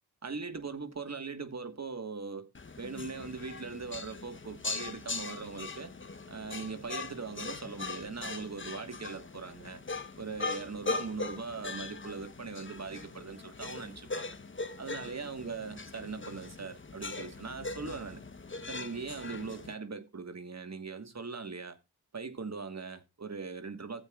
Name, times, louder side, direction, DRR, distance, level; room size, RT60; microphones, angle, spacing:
voice 1, 0.2-2.5 2.7-5.9 6.3-9.8 10.2-14.4 14.8-18.2 18.7-21.8 22.1-24.0, right 4 dB, 40° right, 1.5 m, -40 dB
sound 1, 2.5-19.7, left 3 dB, 30° left, 1.1 m, -40 dB
15.0 x 8.0 x 2.4 m
cardioid pair, 45°, 40 cm